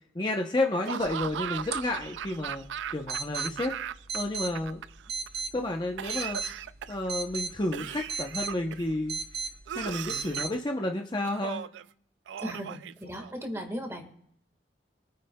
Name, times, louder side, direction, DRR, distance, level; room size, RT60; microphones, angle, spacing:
voice 1, 0.1-2.6 2.9-3.7 4.1-4.8 5.5-6.4 6.9-9.2 9.7-11.6, left 2 dB, 25° left, 2 dB, 0.7 m, -31 dB
Laughter / Cough, 0.9-4.2 4.4-5.3 6.0-7.1 7.7-8.9 9.7-10.6 11.2-11.8 12.3-13.5, right 9 dB, 90° right, 0.3 m, -37 dB
sound 1, 1.0-10.5, right 5 dB, 60° right, 0.9 m, -38 dB
voice 2, 12.4-14.1, equal, 15° right, 3 dB, 1.6 m, -37 dB
26.0 x 9.5 x 2.3 m, 0.71 s
head